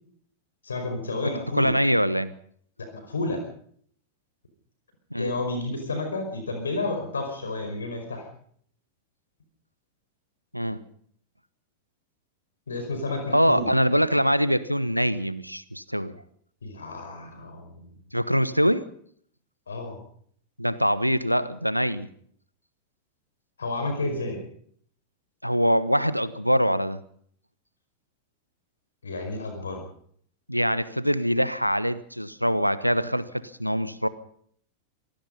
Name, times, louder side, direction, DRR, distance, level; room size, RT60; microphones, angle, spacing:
voice 1, 0.6-1.7 2.8-3.4 5.2-8.2 12.7-13.7 16.6-17.9 19.7-20.0 23.6-24.4 29.0-29.8, left 2 dB, 70° left, 5 dB, 5.1 m, -31 dB
voice 2, 1.6-2.3 5.1-5.3 10.5-10.8 13.3-16.2 18.1-18.9 20.6-22.1 25.4-27.0 30.5-33.3 33.6-34.1, equal, 90° right, 16 dB, 1.1 m, -23 dB
26.0 x 18.5 x 5.5 m, 0.62 s
figure-of-eight pair, 90°, 0 cm